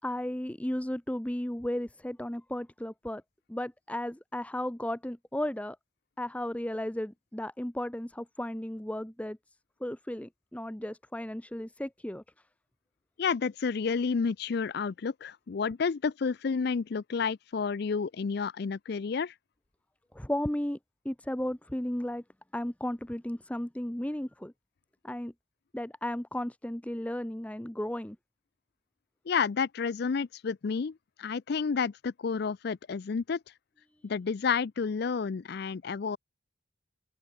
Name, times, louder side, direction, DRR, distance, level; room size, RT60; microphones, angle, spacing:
voice 1, 0.0-3.2 3.5-5.8 6.2-9.4 9.8-12.2 20.1-20.8 21.0-22.2 22.5-24.5 25.0-25.3 25.7-28.2, left 1 dB, 5° left, 0.6 m, -34 dB
voice 2, 13.2-19.3 29.3-33.4 34.0-36.2, left 5 dB, 55° left, 0.4 m, -30 dB
open air
head